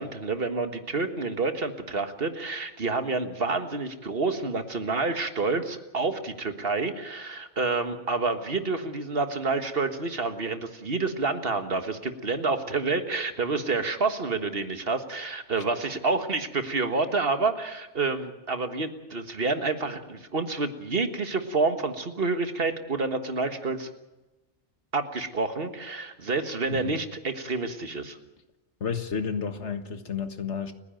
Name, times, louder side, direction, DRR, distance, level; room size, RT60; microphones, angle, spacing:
voice 1, 0.0-23.9 24.9-28.2, right 3 dB, 55° right, 8 dB, 1.8 m, -28 dB
voice 2, 28.8-30.7, left 6 dB, 85° left, 8 dB, 1.9 m, -31 dB
30.0 x 10.5 x 9.1 m, 1.1 s
omnidirectional pair, 1.1 m